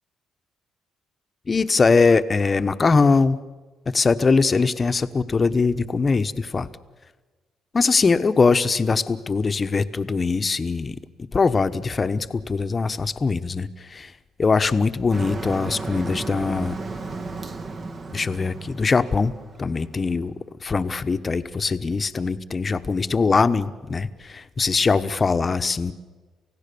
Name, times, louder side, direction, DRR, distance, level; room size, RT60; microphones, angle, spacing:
voice 1, 1.5-3.4 3.9-6.7 7.7-11.0 11.3-14.1 14.4-16.7 18.1-19.3 19.6-20.3 20.6-25.9, left 4 dB, 35° left, 11 dB, 1.1 m, -21 dB
Motor vehicle (road), 15.1-20.1, right 3 dB, 45° right, 1.9 m, -34 dB
29.0 x 16.5 x 7.0 m, 1.3 s
cardioid pair, 90°, 0 cm